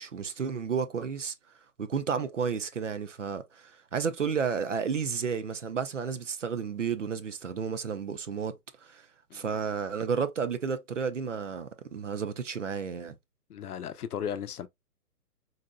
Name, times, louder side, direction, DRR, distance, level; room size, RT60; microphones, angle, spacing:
voice 1, 0.0-1.3 1.8-8.6 8.8-9.1 9.3-13.2, right 6 dB, 50° right, 0.5 m, -32 dB
voice 2, 13.5-14.7, left 8 dB, 70° left, 0.6 m, -36 dB
4.0 x 2.8 x 2.4 m
hypercardioid pair, 170°, 48 cm